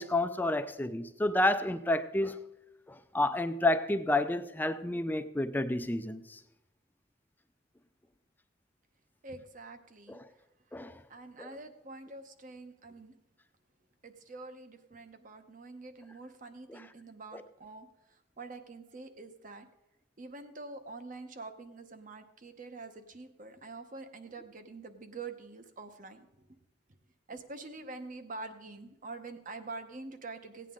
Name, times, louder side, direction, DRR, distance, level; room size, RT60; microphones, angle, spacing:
voice 1, 0.0-2.4 2.9-6.4 10.1-10.2 10.7-11.0 11.4-11.5 16.7-16.8 17.3-17.4, left 1 dB, 10° left, 0.4 m, -30 dB
voice 2, 9.2-10.2 11.1-13.1 14.0-19.7 20.2-26.5 27.3-30.7, right 3 dB, 45° right, 0.9 m, -46 dB
16.5 x 9.0 x 3.7 m
head